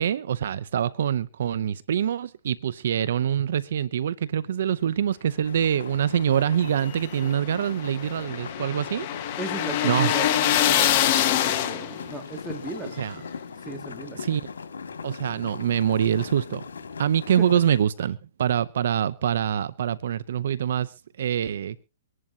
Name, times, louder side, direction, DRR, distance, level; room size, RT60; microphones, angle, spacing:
voice 1, 0.0-9.1 9.8-10.1 13.0-13.2 14.2-14.4 15.0-16.6 17.0-21.8, right 9 dB, 70° right, 0.6 m, -25 dB
sound 1, 5.4-17.8, left 5 dB, 90° left, 2.3 m, -39 dB
sound 2, 6.7-12.1, left 11 dB, 40° left, 1.4 m, -24 dB
voice 2, 9.4-10.3 10.6-13.3 13.6-14.3 17.4-17.5, right 2 dB, 5° right, 2.1 m, -36 dB
25.0 x 11.0 x 2.8 m
hypercardioid pair, 140°, 0 cm